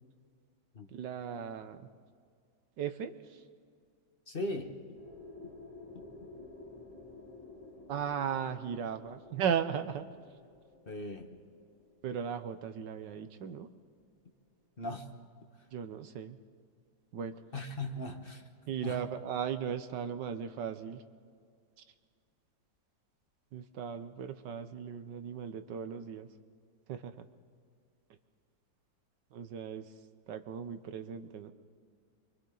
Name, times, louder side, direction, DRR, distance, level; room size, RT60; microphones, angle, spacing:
voice 1, 0.9-1.9 2.8-3.4 7.9-10.1 12.0-13.7 15.7-16.4 17.1-17.4 18.7-21.0 23.5-26.3 26.9-27.2 29.3-29.9 30.3-31.5, right 8 dB, 70° right, 9 dB, 1.4 m, -37 dB
voice 2, 4.3-4.8 10.9-11.3 14.8-15.1 17.5-18.4 18.8-19.0, left 1 dB, 30° left, 3 dB, 1.3 m, -38 dB
sound 1, 4.9-12.8, left 2 dB, 20° right, 8.1 m, -52 dB
29.0 x 24.5 x 3.9 m, 2.2 s
omnidirectional pair, 2.1 m